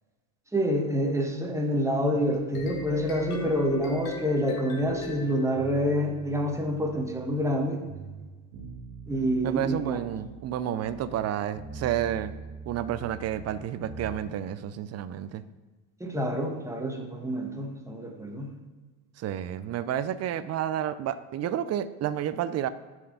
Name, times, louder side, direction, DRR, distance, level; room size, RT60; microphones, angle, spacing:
voice 1, 0.5-7.8 9.1-10.0 16.0-18.6, equal, 5° right, 3 dB, 1.2 m, -27 dB
sound 1, 2.3-6.7, left 4 dB, 85° left, 1.7 m, -38 dB
sound 2, 2.5-5.2 5.5-7.6 7.8-11.3 11.5-14.2, right 5 dB, 85° right, 1.6 m, -44 dB
voice 2, 9.4-12.3 12.7-15.4 19.2-22.7, right 10 dB, 35° right, 14 dB, 0.4 m, -30 dB
7.4 x 4.6 x 5.6 m, 1.3 s
supercardioid pair, 100°, 46 cm